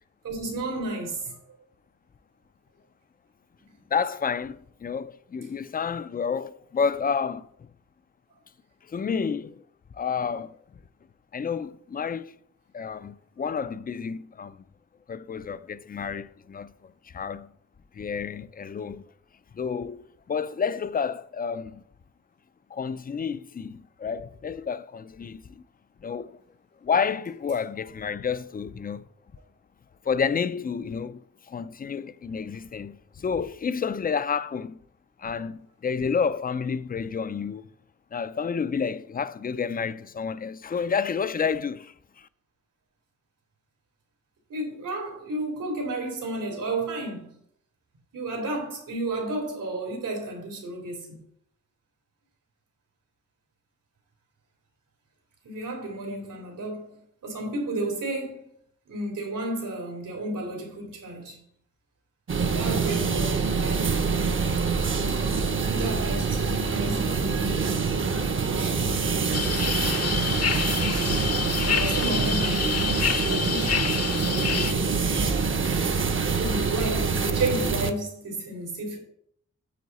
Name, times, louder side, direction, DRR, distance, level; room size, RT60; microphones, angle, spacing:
voice 1, 0.2-1.4 3.6-3.7 44.5-47.4 48.1-51.2 55.4-58.5 58.9-61.4 62.4-64.1 65.5-67.7 68.5-69.5 71.7-75.0 76.4-79.0, right 2 dB, 85° right, 3.6 m, -32 dB
voice 2, 3.9-7.7 8.9-9.6 9.9-10.6 11.3-12.4 12.7-14.6 15.1-17.5 17.9-19.0 19.5-21.8 22.7-25.6 26.0-26.4 26.8-29.0 30.0-31.2 31.5-34.8 35.2-37.7 38.1-42.3, left 6 dB, 30° left, 0.4 m, -30 dB
sound 1, 62.3-77.9, right 5 dB, 40° right, 0.8 m, -25 dB
sound 2, 69.3-74.7, left 6 dB, 55° left, 0.9 m, -28 dB
9.3 x 7.8 x 4.2 m
wide cardioid pair, 130°, 31 cm